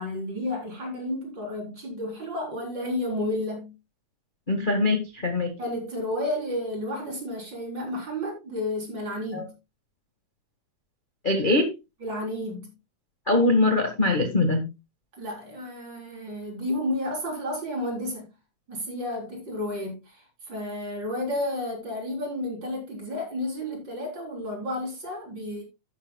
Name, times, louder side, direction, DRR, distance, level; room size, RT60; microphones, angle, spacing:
voice 1, 0.0-3.7 5.6-9.5 12.0-12.7 15.2-18.3 18.7-25.6, left 1 dB, 35° right, 4.4 m, -31 dB
voice 2, 4.5-5.5 9.3-9.5 11.2-11.7 13.3-14.6, left 2 dB, 40° left, 0.7 m, -22 dB
12.0 x 10.5 x 2.2 m
omnidirectional pair, 3.6 m